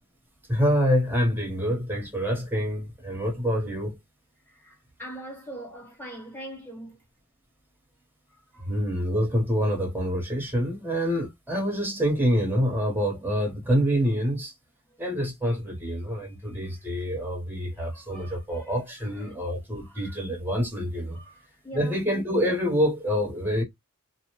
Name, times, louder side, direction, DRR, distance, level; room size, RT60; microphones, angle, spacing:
voice 1, 0.5-3.9 8.6-14.5 15.0-21.2 21.7-23.6, equal, 10° right, 1.0 m, -26 dB
voice 2, 4.5-7.0 8.5-8.8 16.2-16.3 16.6-16.7 17.7-19.4 19.8-20.2 21.1-22.0, right 1 dB, 10° left, 1.2 m, -43 dB
2.5 x 2.2 x 2.9 m
head